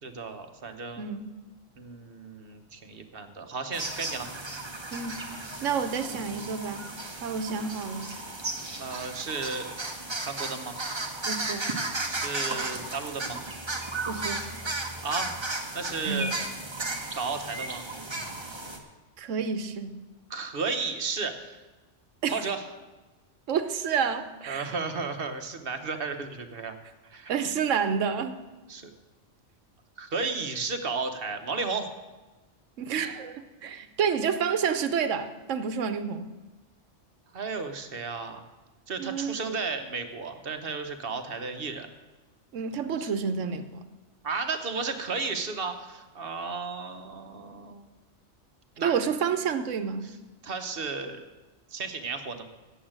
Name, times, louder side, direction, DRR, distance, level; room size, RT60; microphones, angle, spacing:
voice 1, 0.0-1.0 1.8-4.3 8.8-9.7 10.2-10.7 12.1-13.4 15.0-15.3 15.7-16.3 17.1-17.8 20.3-21.6 22.3-22.6 24.5-26.7 27.0-27.3 28.7-28.9 30.0-31.9 37.3-38.4 38.9-41.9 43.0-43.1 44.2-47.9 48.8-48.9 50.4-51.2 51.7-52.4, right 4 dB, 50° right, 7 dB, 1.1 m, -33 dB
voice 2, 1.0-1.3 4.9-5.2 5.6-6.9 7.2-8.1 11.3-11.7 14.1-14.4 16.0-16.2 19.2-20.0 22.2-22.4 23.5-24.7 27.3-28.4 32.8-36.3 39.0-39.4 42.5-43.8 48.8-50.1, right 6 dB, 80° right, 10 dB, 1.2 m, -29 dB
sound 1, 3.7-18.8, right 2 dB, 25° right, 1.1 m, -35 dB
8.5 x 7.9 x 8.7 m, 1.2 s
omnidirectional pair, 1.3 m